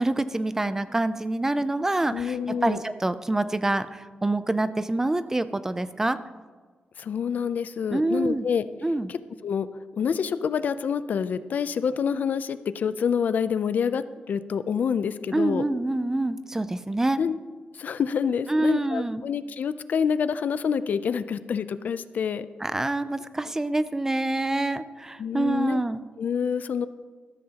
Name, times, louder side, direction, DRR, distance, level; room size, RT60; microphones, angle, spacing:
voice 1, 0.0-2.4 2.6-6.2 7.9-8.5 8.8-9.1 15.3-17.2 18.5-19.2 22.6-26.0, right 2 dB, 15° right, 13 dB, 0.4 m, -26 dB
voice 2, 2.1-2.8 7.0-8.6 9.1-9.7 10.0-15.7 17.2-17.4 17.7-22.5 25.2-25.8 26.2-26.9, left 7 dB, 60° left, 13 dB, 0.4 m, -27 dB
14.0 x 13.0 x 2.9 m, 1.5 s
wide cardioid pair, 145°, 3 cm